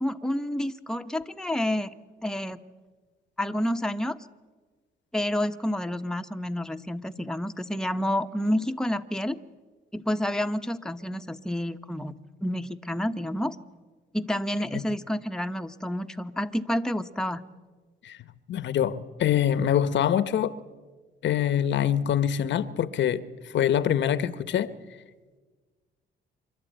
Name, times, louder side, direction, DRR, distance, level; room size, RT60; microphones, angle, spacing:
voice 1, 0.0-1.9 2.2-2.6 3.4-4.2 5.1-9.4 9.9-12.1 12.4-13.6 14.1-17.4, left 1 dB, 5° left, 0.9 m, -29 dB
voice 2, 18.5-20.5 21.2-23.2 23.5-24.7, left 10 dB, 65° left, 0.9 m, -24 dB
26.0 x 12.0 x 9.1 m
cardioid pair, 90°, 20 cm